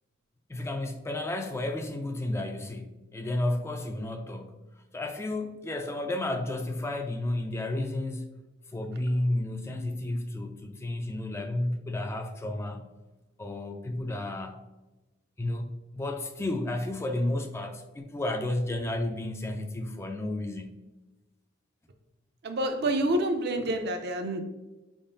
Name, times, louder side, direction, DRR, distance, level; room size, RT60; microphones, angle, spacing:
voice 1, 0.5-4.6 4.9-8.3 8.7-12.9 13.4-14.6 15.4-20.8, left 1 dB, 15° left, 5 dB, 0.3 m, -32 dB
voice 2, 22.4-24.4, right 1 dB, 55° right, 6 dB, 0.5 m, -28 dB
4.7 x 3.6 x 2.6 m, 1.1 s
head